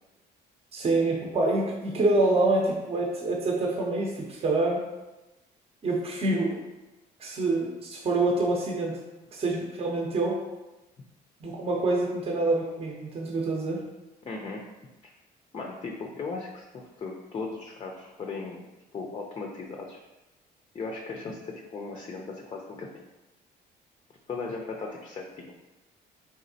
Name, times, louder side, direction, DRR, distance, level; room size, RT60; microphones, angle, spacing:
voice 1, 0.7-4.8 5.8-6.6 7.2-9.0 9.3-10.4 11.4-13.8, right 2 dB, 35° right, -1 dB, 0.7 m, -26 dB
voice 2, 14.2-14.7 15.0-15.1 15.5-18.6 18.9-20.0 20.7-23.0 24.3-25.5, left 4 dB, 30° left, 0 dB, 0.5 m, -37 dB
4.0 x 3.6 x 2.7 m, 1.0 s
cardioid pair, 110°, 17 cm